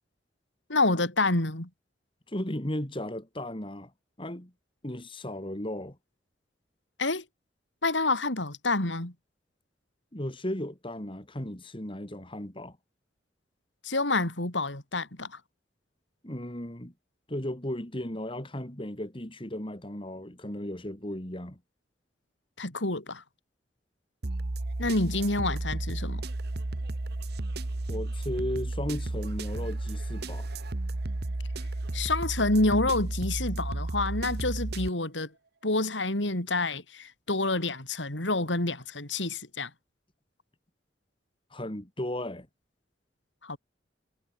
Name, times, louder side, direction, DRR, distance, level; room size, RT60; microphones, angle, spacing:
voice 1, 0.7-1.7 7.0-7.2 7.8-9.1 13.8-15.4 22.6-23.2 24.8-26.2 31.9-35.3 35.6-39.7 43.4-43.6, left 2 dB, 85° left, 4.5 m, -28 dB
voice 2, 2.3-3.9 4.2-4.5 4.8-6.0 10.1-12.8 16.2-16.9 17.3-21.6 27.9-30.5 41.5-42.5, left 1 dB, 30° left, 3.5 m, -35 dB
sound 1, 24.2-34.9, right 2 dB, 60° right, 1.1 m, -33 dB
head